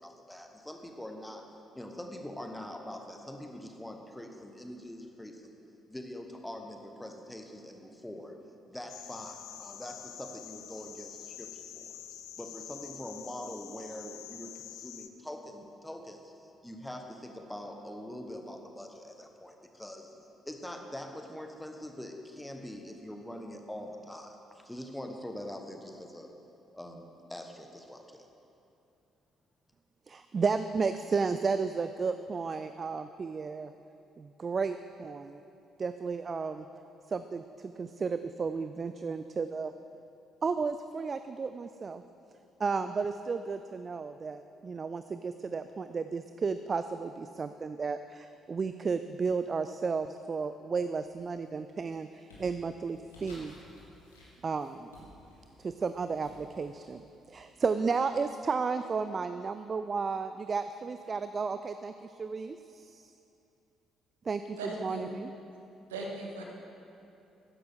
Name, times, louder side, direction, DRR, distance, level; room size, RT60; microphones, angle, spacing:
voice 1, 0.0-1.5 1.7-5.6 5.9-8.3 8.7-20.1 20.4-26.3 26.7-28.3, left 1 dB, 5° left, 4 dB, 1.2 m, -44 dB
sound 1, 8.9-15.1, left 10 dB, 65° left, 0.5 m, -47 dB
voice 2, 30.1-33.7 34.2-35.4 35.8-36.7 37.1-39.7 40.4-42.0 42.6-53.5 54.4-54.9 55.6-63.1 64.3-65.3, right 5 dB, 35° right, 10 dB, 0.3 m, -33 dB
sound 2, 51.1-51.4 51.8-58.4, left 1 dB, 80° left, 2.0 m, -56 dB
voice 3, 64.6-65.2 65.9-66.4, right 2 dB, 75° right, 0 dB, 1.1 m, -38 dB
13.5 x 10.5 x 3.7 m, 2.8 s
figure-of-eight pair, 45°, 0 cm